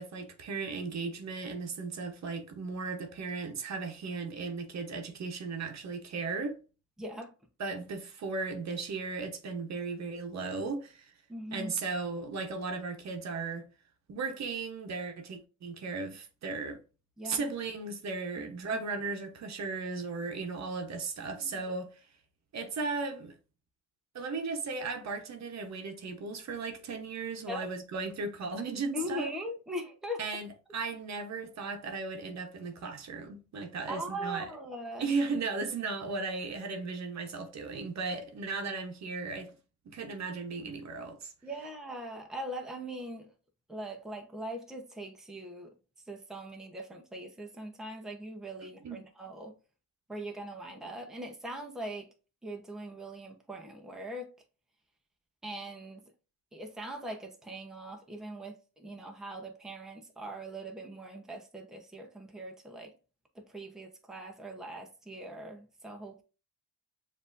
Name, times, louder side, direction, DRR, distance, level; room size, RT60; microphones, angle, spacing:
voice 1, 0.0-6.6 7.6-11.1 11.5-13.7 14.1-16.8 17.2-22.0 22.5-23.3 24.1-29.3 30.2-34.5 35.0-39.5 39.8-41.3 48.8-49.0, right 4 dB, 50° right, 1.0 m, -36 dB
voice 2, 7.0-7.3 11.3-11.7 17.2-17.5 21.3-21.5 27.5-27.7 28.9-30.2 33.9-35.1 41.4-43.3 43.7-45.7 46.1-49.5 50.1-52.1 52.4-54.3 55.4-56.0 56.5-62.9 63.3-66.2, right 1 dB, ahead, 0.8 m, -41 dB
7.0 x 2.7 x 2.5 m
cardioid pair, 100°, 34 cm